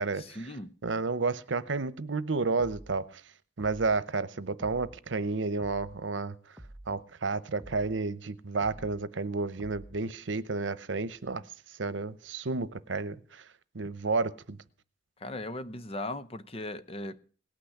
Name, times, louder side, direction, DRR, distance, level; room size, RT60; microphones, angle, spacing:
voice 1, 0.1-0.7 15.2-17.2, left 1 dB, 30° left, 0.8 m, -38 dB
voice 2, 0.8-3.2 3.6-6.3 6.9-11.4 11.8-13.4 13.7-14.6, right 3 dB, 85° right, 0.9 m, -31 dB
sound 1, 2.6-3.0 3.6-4.0 4.6-5.0 5.6-6.0 6.6-7.0 7.6-8.0 8.6-9.0 9.6-10.0, right 1 dB, 10° right, 1.1 m, -48 dB
18.5 x 6.2 x 10.0 m
head